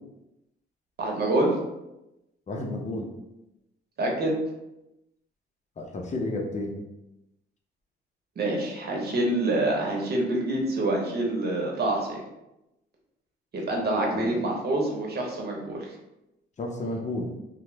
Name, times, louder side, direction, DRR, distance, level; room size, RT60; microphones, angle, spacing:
voice 1, 1.0-1.5 4.0-4.3 8.4-12.2 13.5-15.8, right 2 dB, 55° right, -1 dB, 0.9 m, -26 dB
voice 2, 2.5-3.1 5.8-6.8 14.1-14.4 16.6-17.3, left 2 dB, 35° left, 1 dB, 0.6 m, -31 dB
2.9 x 2.1 x 3.3 m, 0.93 s
cardioid pair, 90°, 20 cm